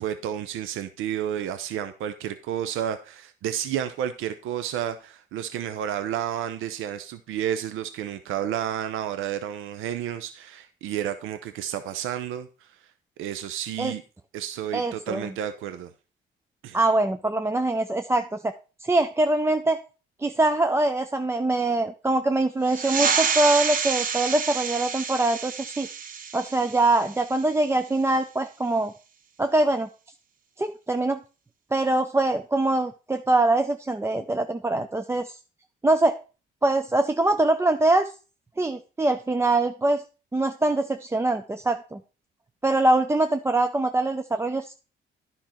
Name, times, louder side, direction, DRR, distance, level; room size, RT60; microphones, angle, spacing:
voice 1, 0.0-12.8 13.2-14.0 14.3-15.9 16.6-16.8, right 10 dB, 90° right, 10 dB, 0.6 m, -31 dB
voice 2, 14.7-15.3 16.7-18.5 18.8-19.8 20.2-25.9 26.3-28.9 29.4-29.9 30.6-31.2 31.7-35.4 35.8-36.2 36.6-38.1 38.6-40.0 40.3-42.0 42.6-44.7, right 2 dB, 15° right, 8 dB, 0.5 m, -23 dB
sound 1, 22.6-27.8, right 6 dB, 45° right, 0.9 m, -29 dB
10.5 x 5.5 x 4.3 m, 0.34 s
cardioid pair, 90°, 20 cm